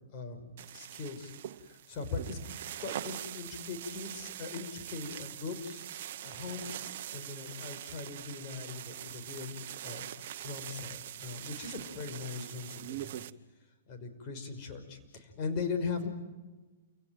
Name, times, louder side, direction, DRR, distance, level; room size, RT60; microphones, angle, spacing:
voice 1, 0.1-1.3 1.6-2.4 2.8-6.7 7.1-10.1 10.4-13.2 13.9-16.1, left 4 dB, 40° left, 6 dB, 5.6 m, -40 dB
sound 1, 0.6-13.3, right 11 dB, 55° right, 1.2 m, -43 dB
29.0 x 17.5 x 9.1 m, 1.2 s
hypercardioid pair, 130°, 0 cm